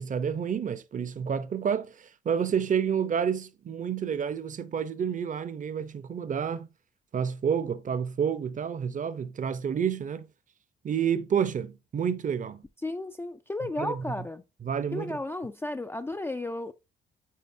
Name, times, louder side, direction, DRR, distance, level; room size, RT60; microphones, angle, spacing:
voice 1, 0.0-6.7 7.1-10.3 10.8-12.6 13.8-14.0 14.6-15.2, right 7 dB, 40° right, 0.7 m, -29 dB
voice 2, 12.8-14.4 14.9-16.7, left 2 dB, 10° left, 0.4 m, -33 dB
8.5 x 4.3 x 2.7 m
cardioid pair, 90°, 20 cm